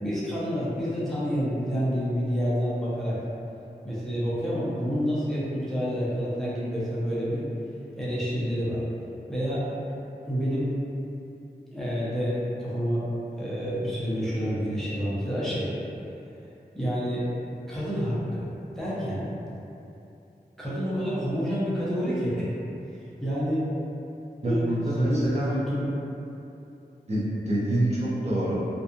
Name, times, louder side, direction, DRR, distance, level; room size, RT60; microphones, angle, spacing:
voice 1, 0.0-3.2 3.8-7.4 8.0-8.8 9.3-9.7 10.3-10.7 11.7-13.1 13.4-15.7 16.7-17.3 17.7-18.5 18.8-19.3 20.6-22.5 23.2-23.7 24.4-24.7 25.0-25.9, equal, ahead, -9 dB, 0.6 m, -28 dB
voice 2, 24.4-25.6 27.1-28.7, right 1 dB, 40° right, -8 dB, 0.5 m, -26 dB
2.6 x 2.3 x 2.4 m, 2.8 s
wide cardioid pair, 80°, 17 cm